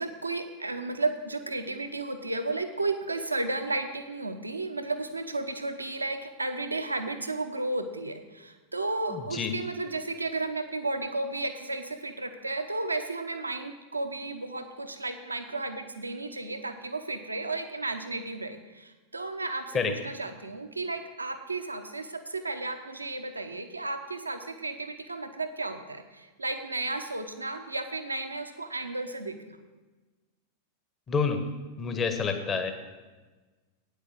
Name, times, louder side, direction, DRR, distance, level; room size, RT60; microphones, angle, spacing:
voice 1, 0.0-29.6, right 2 dB, 80° right, 7 dB, 0.8 m, -33 dB
voice 2, 9.1-9.5 19.7-19.9 31.1-31.4 31.8-32.7, left 5 dB, 25° left, 6 dB, 1.1 m, -28 dB
9.2 x 8.3 x 6.1 m, 1.3 s
figure-of-eight pair, 90°, 0 cm